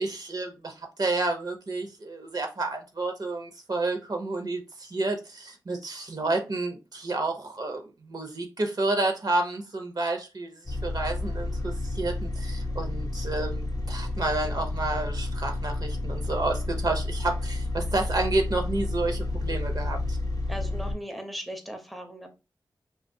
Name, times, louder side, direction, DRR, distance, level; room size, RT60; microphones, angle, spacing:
voice 1, 0.0-20.2, right 2 dB, 55° right, 0.7 m, -30 dB
sound 1, 10.7-21.0, left 2 dB, 50° left, 0.6 m, -30 dB
voice 2, 20.5-22.3, equal, ahead, 0.6 m, -38 dB
2.4 x 2.4 x 2.5 m
cardioid pair, 55°, 8 cm